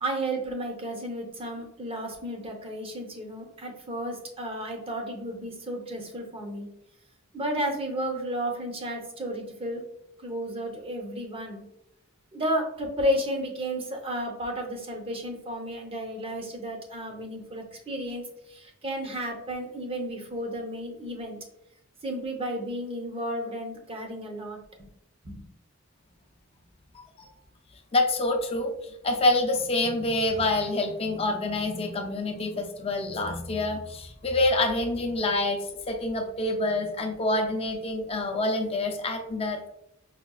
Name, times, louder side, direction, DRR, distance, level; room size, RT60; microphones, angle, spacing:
voice 1, 0.0-6.7 7.3-9.8 10.2-11.6 12.3-21.4 22.0-24.9 25.2-25.4, equal, 30° right, 2 dB, 0.6 m, -33 dB
voice 2, 26.9-27.3 27.9-39.7, left 2 dB, 30° left, 4 dB, 0.5 m, -27 dB
4.9 x 2.2 x 2.3 m, 0.82 s
head